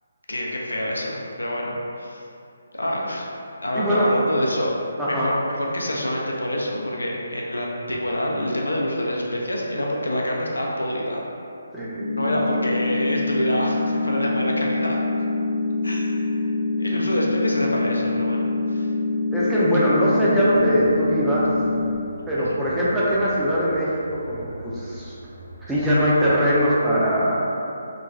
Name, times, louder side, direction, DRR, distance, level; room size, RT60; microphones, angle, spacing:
voice 1, 0.3-2.2 2.7-3.3 3.6-4.7 5.1-11.2 12.1-15.0 15.8-16.4 16.8-18.4 18.7-18.9 22.4-22.6, equal, 75° left, -2 dB, 0.4 m, -26 dB
voice 2, 3.7-4.2 5.0-5.3 11.7-12.0 19.3-21.5 22.3-25.1 25.7-27.8, equal, 5° right, -10 dB, 0.4 m, -21 dB
sound 1, 11.9-21.9, left 3 dB, 60° right, 1.1 m, -25 dB
sound 2, 20.3-26.6, right 1 dB, 85° right, 1.0 m, -42 dB
3.0 x 2.1 x 2.5 m, 2.6 s
figure-of-eight pair, 145°, 0 cm